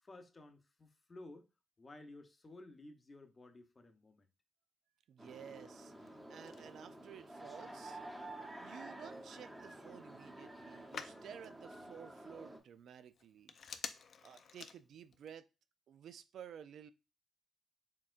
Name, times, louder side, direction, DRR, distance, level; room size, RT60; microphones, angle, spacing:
voice 1, 0.0-1.5 1.8-4.2, left 2 dB, 30° left, 0.8 m, -55 dB
voice 2, 5.1-8.0 8.6-13.5 14.2-15.5 15.9-16.9, right 8 dB, 75° right, 0.3 m, -53 dB
sound 1, 5.2-12.6, right 1 dB, 10° right, 0.8 m, -51 dB
Telephone, 5.8-15.3, left 6 dB, 60° left, 0.4 m, -54 dB
4.4 x 3.5 x 2.4 m
cardioid pair, 100°, 0 cm